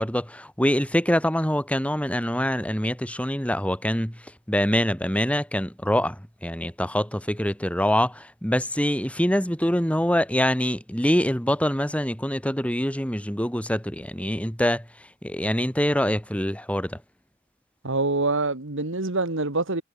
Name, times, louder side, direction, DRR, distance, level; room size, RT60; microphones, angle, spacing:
voice 1, 0.0-14.9 15.2-17.0, equal, 5° left, 5.9 m, -25 dB
voice 2, 17.8-19.8, right 3 dB, 65° right, 2.3 m, -25 dB
head